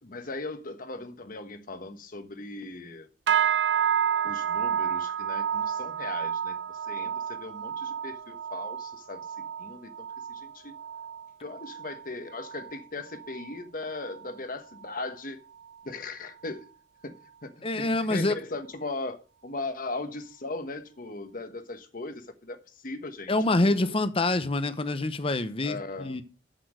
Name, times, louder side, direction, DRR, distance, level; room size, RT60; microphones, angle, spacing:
voice 1, 0.0-3.1 4.2-6.6 6.8-10.7 11.4-15.4 15.8-16.6 17.0-17.1 17.4-23.3 23.6-23.9 25.6-26.1, left 2 dB, 50° left, 1.2 m, -38 dB
sound 1, 3.3-12.8 13.1-13.6 14.0-14.3 14.8-14.9, right 8 dB, 75° right, 0.5 m, -30 dB
voice 2, 17.6-18.4 23.3-26.2, left 2 dB, 30° left, 0.8 m, -26 dB
7.7 x 6.8 x 6.4 m
head